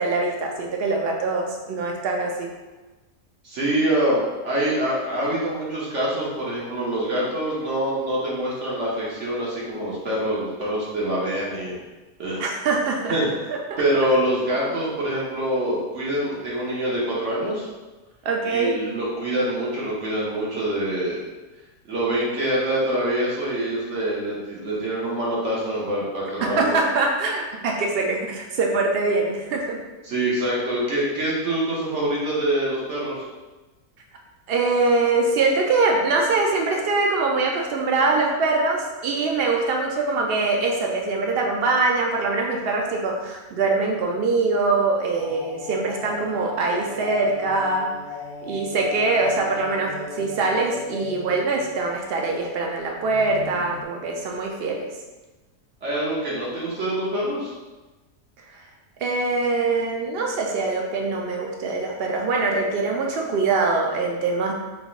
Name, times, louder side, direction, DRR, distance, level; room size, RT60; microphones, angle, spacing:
voice 1, 0.0-2.5 12.4-13.1 13.5-13.8 18.2-18.7 26.4-29.8 34.5-47.9 48.4-54.9 59.0-64.5, right 3 dB, 75° right, 0 dB, 0.5 m, -23 dB
voice 2, 3.4-11.7 12.2-12.4 13.1-13.3 13.8-17.7 18.4-21.2 21.9-26.7 30.0-33.2 55.8-57.5, right 1 dB, 55° right, -5 dB, 1.1 m, -25 dB
sound 1, 45.1-52.0 52.3-52.4 53.1-53.8, left 3 dB, 65° left, 1.0 m, -36 dB
4.1 x 3.4 x 2.4 m, 1.2 s
omnidirectional pair, 1.6 m